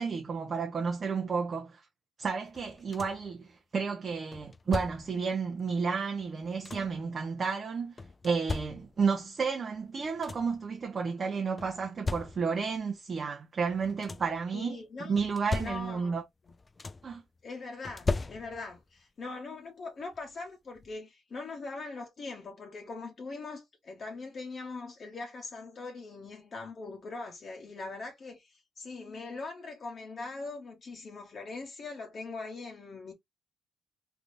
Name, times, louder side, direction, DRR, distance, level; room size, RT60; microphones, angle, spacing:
voice 1, 0.0-1.8 2.2-7.9 8.2-14.8 15.1-16.2 17.0-17.2, right 5 dB, 40° right, 0.7 m, -32 dB
sound 1, 2.6-3.4 4.3-5.3 6.2-7.1 8.0-9.2 9.8-9.9 10.0-10.7 11.6-12.7 13.7-14.4 15.2-16.2 16.5-17.2 17.9-18.8 20.1-20.2 20.8-20.9, left 3 dB, 25° left, 0.3 m, -38 dB
voice 2, 14.5-15.1 15.6-16.2 17.4-33.1, left 3 dB, 45° left, 0.9 m, -41 dB
3.3 x 2.7 x 2.6 m
cardioid pair, 90°, 0 cm